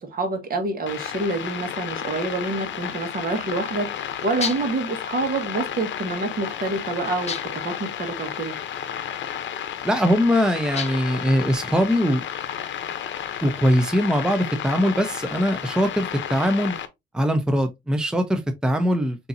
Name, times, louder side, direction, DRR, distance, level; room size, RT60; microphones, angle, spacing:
voice 1, 0.0-8.5, right 3 dB, 45° right, 1.5 m, -27 dB
sound 1, 0.9-16.9, left 9 dB, 70° left, 0.8 m, -32 dB
sound 2, 4.4-4.9 7.3-7.7 10.7-11.2, left 5 dB, 35° left, 0.9 m, -31 dB
voice 2, 9.8-12.2 13.4-16.7 17.1-19.2, equal, 5° right, 0.7 m, -21 dB
6.7 x 2.8 x 2.7 m
cardioid pair, 90°, 20 cm